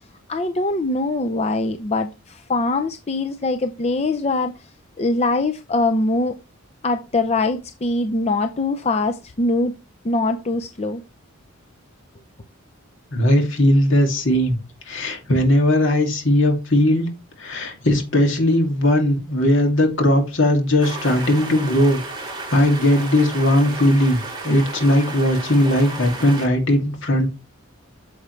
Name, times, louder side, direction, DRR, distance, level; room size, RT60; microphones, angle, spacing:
voice 1, 0.3-4.5 5.0-6.4 6.8-9.7 10.0-11.0, left 2 dB, 30° left, 0.5 m, -22 dB
voice 2, 13.1-14.6 14.9-17.1 17.4-22.0 22.5-24.2 24.4-27.3, left 1 dB, 60° left, 2.4 m, -18 dB
sound 1, 20.8-26.5, right 2 dB, 20° right, 3.8 m, -33 dB
9.4 x 7.2 x 3.2 m
head